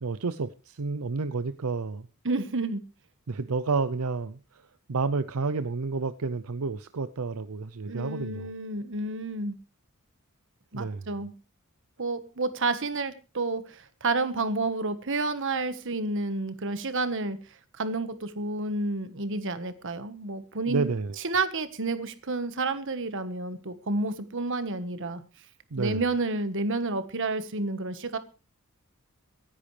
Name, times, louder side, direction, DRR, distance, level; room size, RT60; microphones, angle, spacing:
voice 1, 0.0-2.1 3.3-4.6 4.9-8.5 10.7-11.1 20.7-21.2 25.7-26.0, right 4 dB, 85° right, 0.6 m, -30 dB
voice 2, 2.2-2.8 7.9-9.6 10.7-11.3 12.0-17.4 17.8-20.9 21.2-25.2 25.8-28.2, right 3 dB, 60° right, 1.4 m, -30 dB
24.5 x 10.5 x 3.3 m
head